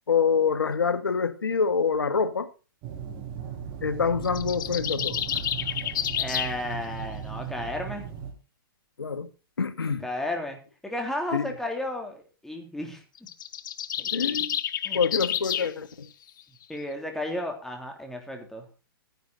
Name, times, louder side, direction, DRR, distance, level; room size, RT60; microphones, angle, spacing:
voice 1, 0.1-2.5 3.8-5.2 9.0-9.3 9.6-10.1 11.3-11.5 14.1-14.6 14.9-16.1, left 6 dB, 90° left, 1.8 m, -26 dB
sound 1, 2.8-8.3, right 8 dB, 35° right, 4.3 m, -37 dB
sound 2, 4.2-6.6 13.2-15.7, left 10 dB, 60° left, 1.3 m, -30 dB
voice 2, 6.2-8.1 10.0-13.0 14.0-14.5 14.8-15.0 15.5-15.6 16.7-18.7, left 1 dB, 5° left, 3.3 m, -33 dB
14.0 x 10.5 x 4.1 m
hypercardioid pair, 135°, 12 cm